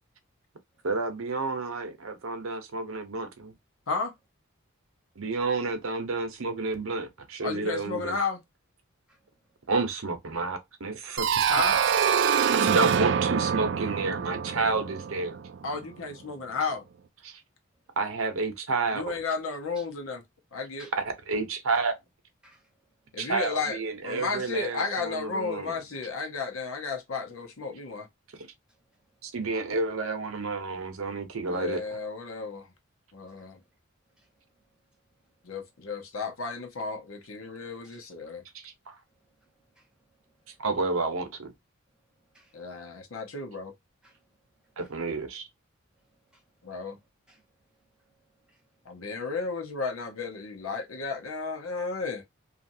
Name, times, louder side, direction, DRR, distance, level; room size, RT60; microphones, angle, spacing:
voice 1, 0.8-3.5 5.2-8.1 9.7-11.7 12.6-15.3 17.2-17.4 18.0-19.0 21.3-21.9 23.2-25.7 29.2-31.8 38.6-39.0 40.6-41.5 44.8-45.5, right 3 dB, 80° right, 0.8 m, -30 dB
voice 2, 7.4-8.4 11.5-11.8 15.6-16.8 18.9-20.2 20.5-20.9 23.1-28.1 31.5-32.7 33.1-33.6 35.4-38.4 42.5-43.7 46.6-47.0 48.8-52.2, left 4 dB, 85° left, 0.9 m, -33 dB
sound 1, 11.2-15.8, right 7 dB, 55° right, 0.3 m, -25 dB
voice 3, 39.2-39.9 40.3-40.6 42.3-42.8 44.0-44.3 44.6-44.9 46.0-46.4 47.3-47.5 47.7-48.6, right 2 dB, 5° right, 1.0 m, -60 dB
2.8 x 2.5 x 2.7 m
head